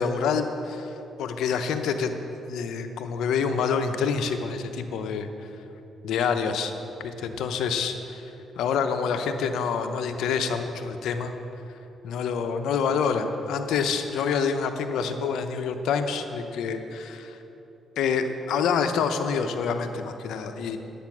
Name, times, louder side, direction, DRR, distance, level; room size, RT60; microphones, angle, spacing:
voice 1, 0.0-2.2 2.5-5.3 6.0-6.7 7.0-11.3 12.0-17.4 18.0-20.8, left 6 dB, 80° left, 7 dB, 0.8 m, -27 dB
10.5 x 8.5 x 6.0 m, 3.0 s
cardioid pair, 70°, 0 cm